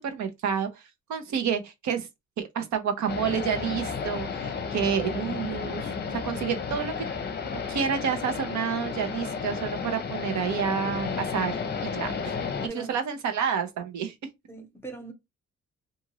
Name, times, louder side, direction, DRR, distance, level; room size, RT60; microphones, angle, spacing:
voice 1, 0.0-2.1 2.4-5.9 6.2-7.1 7.4-11.6 11.9-12.3 12.7-14.1, right 7 dB, 75° right, 0.9 m, -29 dB
sound 1, 3.1-12.7, left 5 dB, 35° left, 0.6 m, -32 dB
voice 2, 11.4-11.8 12.7-13.0 14.5-15.1, right 3 dB, 10° left, 1.0 m, -41 dB
2.6 x 2.6 x 2.9 m
cardioid pair, 90°, 29 cm